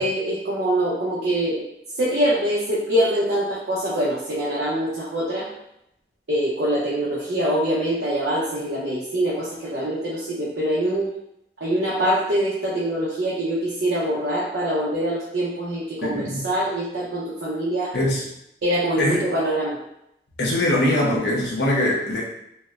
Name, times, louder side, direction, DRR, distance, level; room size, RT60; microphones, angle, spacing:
voice 1, 0.0-1.6 2.0-5.5 6.3-11.1 11.6-17.9 18.6-19.7, right 1 dB, 70° right, -6 dB, 0.7 m, -24 dB
voice 2, 16.0-16.4 17.9-18.3 19.0-19.2 20.4-22.2, left 1 dB, 70° left, -4 dB, 0.8 m, -22 dB
4.2 x 2.1 x 2.4 m, 0.81 s
head